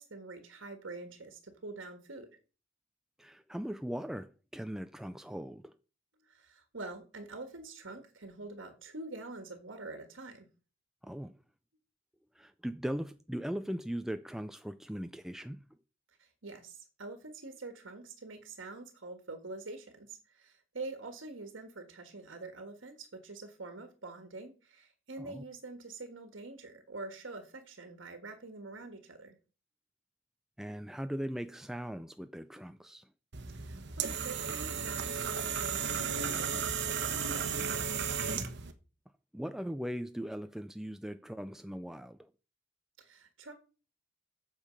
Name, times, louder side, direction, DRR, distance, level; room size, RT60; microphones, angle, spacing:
voice 1, 0.0-2.3 6.2-10.5 16.2-29.4 33.5-37.5 43.0-43.5, right 3 dB, 80° right, 1.5 m, -46 dB
voice 2, 3.2-5.7 11.0-11.3 12.3-15.6 25.2-25.4 30.6-33.1 39.3-42.3, equal, ahead, 0.3 m, -39 dB
sound 1, 33.3-38.7, right 6 dB, 60° right, 1.1 m, -34 dB
8.7 x 6.4 x 5.1 m
head